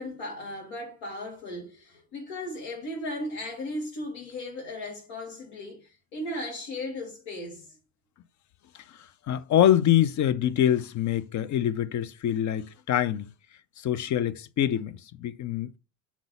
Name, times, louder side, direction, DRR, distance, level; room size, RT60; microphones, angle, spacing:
voice 1, 0.0-7.8, left 1 dB, 80° left, 2.9 m, -36 dB
voice 2, 9.3-13.3 13.8-15.8, left 11 dB, 45° left, 0.5 m, -25 dB
7.2 x 3.9 x 3.9 m
hypercardioid pair, 70°, 42 cm